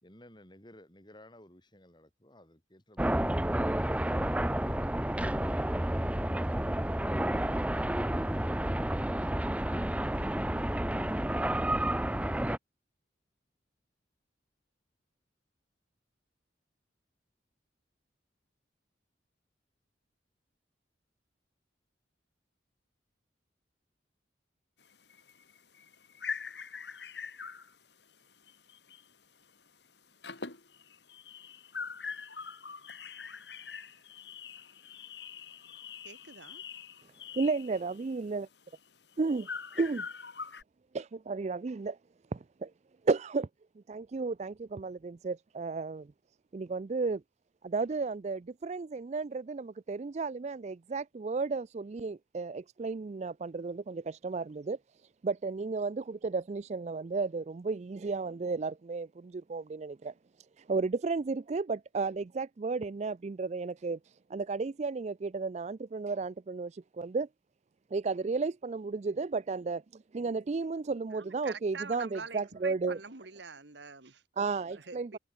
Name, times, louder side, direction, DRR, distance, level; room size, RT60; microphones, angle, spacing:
voice 1, 0.0-4.2 5.9-8.4 8.9-9.4, left 1 dB, 25° left, 5.2 m, -56 dB
sound 1, 3.0-12.6, right 1 dB, 5° right, 0.7 m, -30 dB
sound 2, 24.8-29.2 29.4-29.7 30.0-40.6, left 5 dB, 65° left, 4.8 m, -44 dB
voice 2, 36.0-36.6 71.1-75.2, right 5 dB, 70° right, 2.0 m, -45 dB
voice 3, 37.3-38.5 39.2-39.4 39.8-40.0 40.9-42.0 42.3-42.7 43.0-43.5 43.9-46.1 46.5-47.2 47.6-54.8 55.2-60.1 60.6-64.0 64.3-67.3 67.9-73.0 74.4-75.2, right 4 dB, 35° right, 0.4 m, -33 dB
head